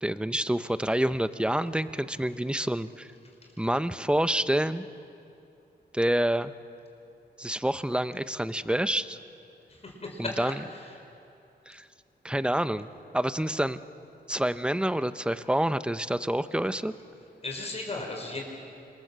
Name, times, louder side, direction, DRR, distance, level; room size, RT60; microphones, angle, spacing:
voice 1, 0.0-3.1 3.6-4.8 5.9-6.5 7.4-9.2 10.2-10.5 11.7-11.9 12.2-13.8 14.3-16.9, right 1 dB, 5° right, 12 dB, 0.8 m, -27 dB
voice 2, 9.7-11.0 17.4-18.4, left 2 dB, 35° left, 1 dB, 5.0 m, -36 dB
28.5 x 26.5 x 7.6 m, 2.7 s
wide cardioid pair, 115°, 18 cm